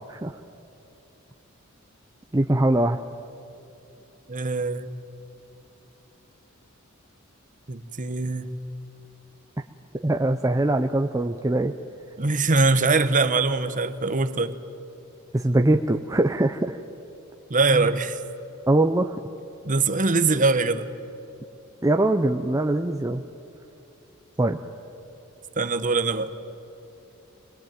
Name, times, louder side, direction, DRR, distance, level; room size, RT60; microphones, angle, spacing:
voice 1, 2.3-3.0 10.0-11.7 15.3-16.8 17.7-17.9 18.7-19.1 21.8-23.2 24.4-24.6, right 1 dB, 15° right, 4 dB, 0.6 m, -22 dB
voice 2, 4.3-4.9 7.7-8.5 12.2-14.6 17.5-18.2 19.6-20.9 25.6-26.3, right 3 dB, 40° right, 10 dB, 1.1 m, -22 dB
25.5 x 20.5 x 9.1 m, 2.9 s
head